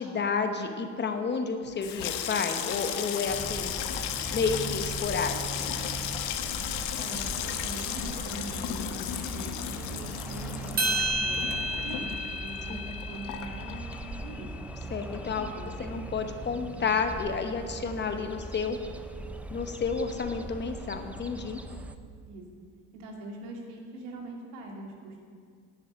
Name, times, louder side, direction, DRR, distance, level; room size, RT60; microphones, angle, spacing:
voice 1, 0.0-3.7 4.3-5.7 12.7-12.9 14.9-15.5 15.8-18.8 19.5-21.6, left 5 dB, 25° left, 7 dB, 1.0 m, -31 dB
Water tap faucet / Sink (filling or washing), 1.7-14.5 14.8-15.5 15.7-16.1, left 10 dB, 65° left, 1.2 m, -35 dB
sound 1, 3.3-21.9, right 2 dB, 5° right, 0.4 m, -40 dB
voice 2, 7.0-12.1 12.4-14.5 15.5-15.9 22.2-22.4 22.9-25.2, right 1 dB, 85° right, 1 dB, 2.8 m, -42 dB
sound 2, 10.8-15.2, right 1 dB, 20° right, 2.1 m, -33 dB
11.0 x 7.6 x 8.9 m, 2.1 s
cardioid pair, 130°, 40 cm